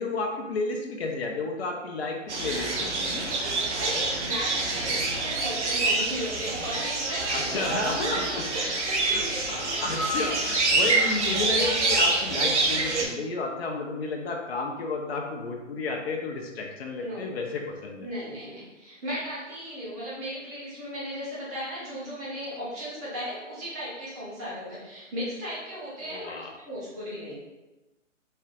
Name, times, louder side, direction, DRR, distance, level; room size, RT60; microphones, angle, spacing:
voice 1, 0.0-3.4 7.3-8.7 9.1-18.1 26.0-26.5, left 3 dB, 55° left, 1 dB, 0.7 m, -32 dB
sound 1, 2.3-13.0, right 3 dB, 60° right, 0.9 m, -26 dB
voice 2, 3.6-8.2 8.5-10.7 17.0-17.2 18.0-27.3, equal, 15° right, -8 dB, 0.7 m, -36 dB
4.3 x 3.3 x 2.4 m, 1.1 s
hypercardioid pair, 155°, 38 cm